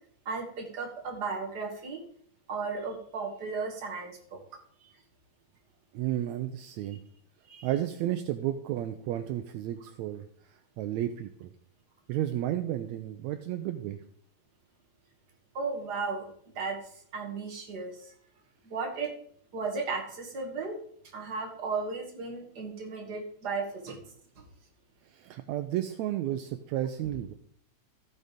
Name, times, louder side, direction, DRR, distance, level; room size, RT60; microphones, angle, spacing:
voice 1, 0.3-2.0 2.5-4.4 7.5-7.7 15.5-16.3 16.5-16.8 17.1-18.1 18.6-19.1 19.5-20.8 21.1-24.0, right 4 dB, 35° right, 0 dB, 2.2 m, -35 dB
voice 2, 5.9-7.0 7.6-11.5 12.1-14.0 25.1-27.3, right 12 dB, 80° right, 8 dB, 1.8 m, -32 dB
14.0 x 6.5 x 5.2 m, 0.64 s
omnidirectional pair, 3.6 m